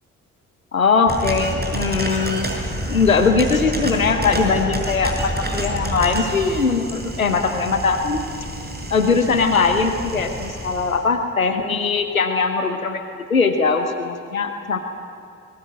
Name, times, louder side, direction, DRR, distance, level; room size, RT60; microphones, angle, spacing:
voice 1, 0.7-2.5 2.9-8.2 8.9-13.0 13.3-14.8, left 4 dB, 85° left, 7 dB, 1.0 m, -20 dB
sound 1, 1.1-11.0, right 1 dB, 25° right, 5.9 m, -28 dB
25.0 x 21.5 x 8.8 m, 2.6 s
figure-of-eight pair, 40°, 40 cm